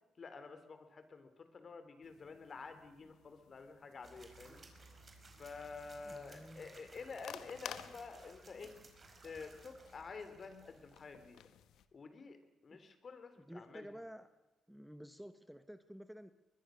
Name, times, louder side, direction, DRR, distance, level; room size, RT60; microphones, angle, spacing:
voice 1, 0.2-4.6 5.4-8.8 9.2-11.4 11.9-13.9, left 4 dB, 45° left, 9 dB, 3.5 m, -50 dB
sound 1, 2.0-11.9, left 10 dB, 75° left, 1.2 m, -56 dB
sound 2, 4.0-11.0, right 3 dB, 35° right, 4.9 m, -60 dB
voice 2, 6.1-6.7 12.7-12.8 13.4-14.3 14.7-16.3, equal, 5° right, 10 dB, 1.0 m, -52 dB
21.5 x 21.5 x 6.5 m, 1.1 s
cardioid pair, 90°, 0 cm